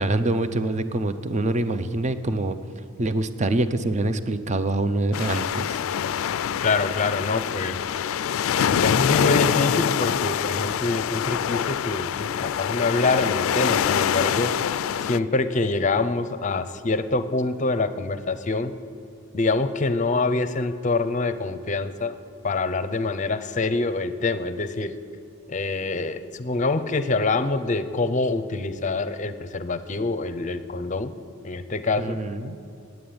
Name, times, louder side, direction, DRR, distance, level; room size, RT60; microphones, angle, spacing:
voice 1, 0.0-2.6 3.0-5.8 32.0-32.6, right 2 dB, 35° right, 11 dB, 0.5 m, -25 dB
sound 1, 5.1-15.2, left 8 dB, 85° left, 0.3 m, -25 dB
voice 2, 6.6-8.2 8.6-14.7 15.0-18.7 19.3-22.2 22.4-24.9 25.5-31.1 31.4-32.2, left 3 dB, 40° left, 12 dB, 0.6 m, -25 dB
9.4 x 8.7 x 9.4 m, 2.6 s
head